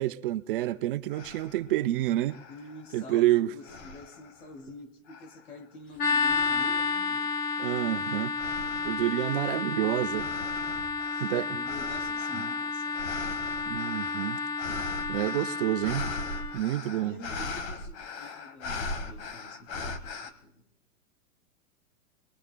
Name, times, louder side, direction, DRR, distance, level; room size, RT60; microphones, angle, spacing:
voice 1, 0.0-2.4 2.9-3.5 7.6-8.3 8.8-10.3 11.2-11.6 12.4-12.5 13.7-14.4 15.1-16.1 16.5-17.2, right 14 dB, 40° right, 0.5 m, -28 dB
sound 1, 0.6-0.7 1.1-1.7 2.3-3.2 3.6-4.5 5.1-5.6 6.2-7.0 7.5-20.3, left 3 dB, 45° left, 1.7 m, -40 dB
voice 2, 2.5-7.4 11.1-13.1 17.0-20.6, left 2 dB, 80° left, 2.7 m, -47 dB
sound 2, 6.0-16.6, left 4 dB, 20° left, 0.9 m, -31 dB
23.5 x 21.5 x 2.2 m
hypercardioid pair, 140°, 43 cm